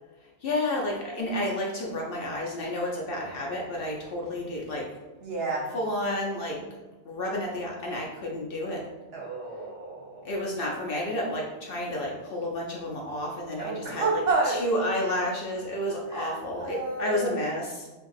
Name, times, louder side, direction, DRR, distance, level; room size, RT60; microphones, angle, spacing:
voice 1, 0.2-5.0 5.7-6.6 7.1-8.9 10.2-17.9, left 1 dB, 60° left, -2 dB, 0.7 m, -31 dB
voice 2, 5.2-5.7 9.1-10.3 13.6-14.6 16.1-17.4, right 3 dB, 60° right, -2 dB, 0.9 m, -30 dB
2.8 x 2.5 x 3.9 m, 1.2 s
omnidirectional pair, 1.3 m